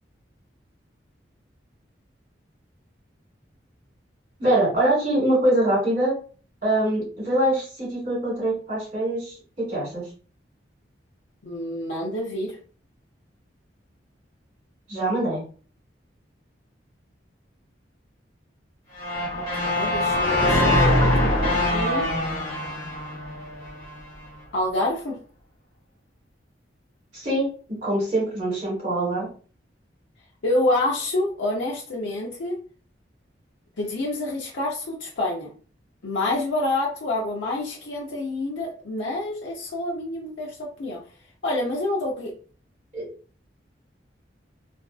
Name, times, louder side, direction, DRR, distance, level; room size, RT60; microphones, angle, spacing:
voice 1, 4.4-6.1 6.6-9.3 9.7-10.0 14.9-15.4 27.1-27.5 27.8-29.3 42.9-43.0, right 1 dB, 45° right, -6 dB, 1.4 m, -23 dB
voice 2, 11.4-12.6 19.6-22.1 24.5-25.2 30.4-32.6 33.8-35.5 36.0-41.0 41.4-42.3, left 2 dB, 85° left, -2 dB, 0.6 m, -27 dB
sound 1, 19.0-24.0, left 1 dB, 15° left, 1.3 m, -23 dB
2.5 x 2.3 x 2.4 m, 0.40 s
head